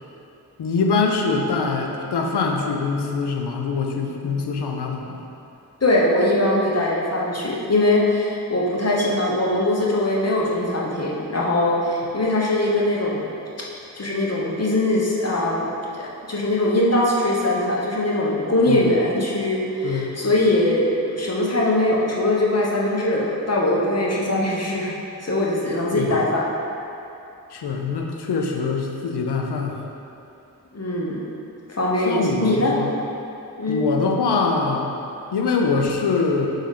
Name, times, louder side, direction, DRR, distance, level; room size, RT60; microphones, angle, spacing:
voice 1, 0.6-5.2 18.7-18.9 19.8-20.2 25.9-26.1 27.5-29.8 32.0-32.9 33.7-34.9 35.3-36.5, left 4 dB, 85° left, 2 dB, 0.7 m, -23 dB
voice 2, 5.8-13.2 13.9-24.9 25.2-26.5 30.7-31.2 31.8-32.7 33.6-33.9, left 1 dB, 40° left, -4 dB, 1.1 m, -21 dB
5.4 x 5.2 x 3.7 m, 2.7 s
cardioid pair, 45°, 39 cm